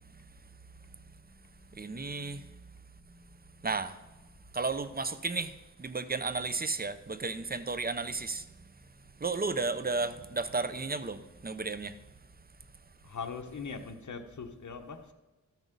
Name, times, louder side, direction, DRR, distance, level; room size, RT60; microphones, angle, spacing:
voice 1, 1.7-2.6 3.6-4.0 4.5-8.5 9.2-12.0, right 3 dB, 30° right, 0.6 m, -33 dB
voice 2, 13.0-15.1, left 5 dB, 60° left, 1.2 m, -41 dB
13.0 x 6.3 x 5.3 m
wide cardioid pair, 80°, 33 cm